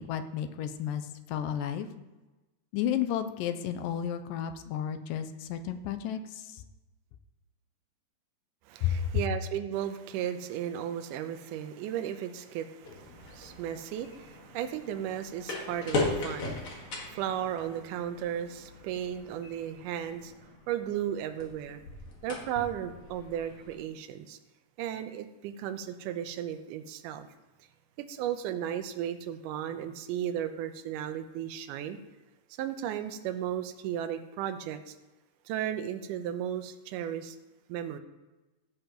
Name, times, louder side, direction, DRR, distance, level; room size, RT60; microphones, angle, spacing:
voice 1, 0.0-1.9 2.7-6.6 8.8-9.2, left 9 dB, 90° left, 8 dB, 2.3 m, -32 dB
voice 2, 8.7-21.8 22.2-24.4 24.8-27.3 28.0-32.0 32.6-35.0 35.5-37.4 37.7-38.0, right 10 dB, 80° right, 8 dB, 2.2 m, -35 dB
sound 1, 12.8-23.8, left 3 dB, 50° left, 2.2 m, -39 dB
16.0 x 7.0 x 3.0 m, 1.1 s
omnidirectional pair, 3.9 m